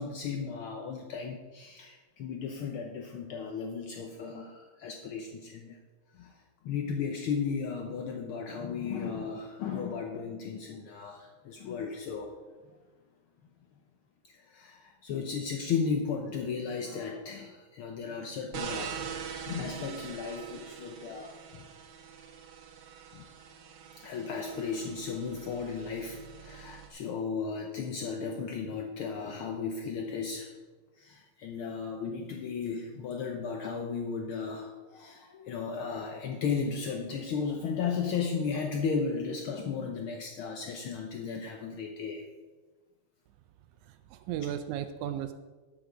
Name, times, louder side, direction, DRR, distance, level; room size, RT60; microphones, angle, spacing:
voice 1, 0.0-5.8 6.1-6.4 6.6-12.3 14.3-19.1 19.5-21.3 23.1-23.3 24.0-30.5 31.0-42.3, left 5 dB, 80° left, 2 dB, 1.2 m, -35 dB
sound 1, 18.5-26.9, right 7 dB, 65° right, 2.0 m, -43 dB
voice 2, 43.8-45.3, right 10 dB, 85° right, 9 dB, 2.0 m, -35 dB
12.5 x 5.9 x 5.0 m, 1.3 s
omnidirectional pair, 3.4 m